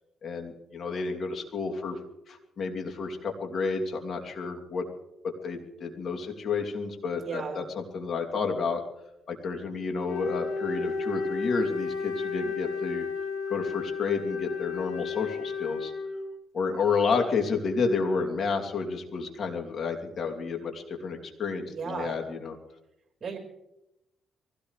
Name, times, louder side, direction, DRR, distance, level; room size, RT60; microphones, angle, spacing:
voice 1, 0.2-2.0 2.3-4.8 5.2-8.8 9.3-13.1 13.5-15.9 16.5-22.5, left 4 dB, 55° left, 2 dB, 2.9 m, -30 dB
voice 2, 7.1-7.6 21.7-22.2 23.2-23.4, right 5 dB, 40° right, 3 dB, 4.6 m, -35 dB
Wind instrument woodwind instrument, 10.1-16.4, left 5 dB, 90° left, 3.2 m, -33 dB
23.5 x 17.0 x 3.3 m, 0.88 s
cardioid pair, 90°, 0 cm